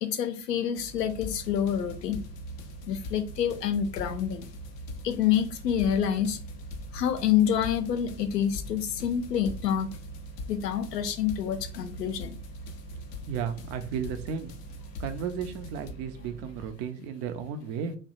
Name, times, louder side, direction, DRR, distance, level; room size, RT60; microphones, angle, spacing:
voice 1, 0.0-2.2 2.9-4.5 5.0-6.4 6.9-9.9 10.5-12.4, left 9 dB, 80° left, 8 dB, 0.6 m, -27 dB
sound 1, 0.8-16.7, right 3 dB, 60° right, 0.9 m, -48 dB
sound 2, 0.9-15.9, left 1 dB, 35° left, 0.4 m, -42 dB
voice 2, 13.3-14.5 15.0-18.0, right 7 dB, 35° right, 8 dB, 0.4 m, -34 dB
2.7 x 2.1 x 3.9 m, 0.38 s
figure-of-eight pair, 70°, 48 cm